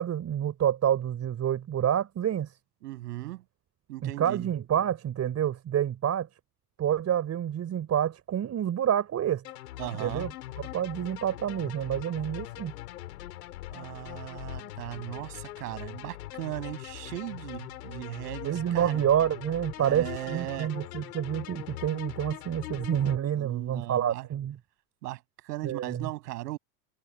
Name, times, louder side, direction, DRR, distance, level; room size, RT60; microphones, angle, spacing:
voice 1, 0.0-2.5 4.0-6.3 6.8-9.4 10.0-10.3 10.7-12.7 18.4-24.6 25.6-26.1, right 10 dB, 30° right, 5.6 m, -28 dB
voice 2, 2.8-3.4 3.9-4.5 9.8-10.3 13.7-19.0 19.8-20.8 23.3-24.3 25.0-26.6, right 18 dB, 70° right, 6.9 m, -38 dB
sound 1, 9.4-23.2, left 15 dB, 75° left, 6.1 m, -41 dB
hypercardioid pair, 110°, 49 cm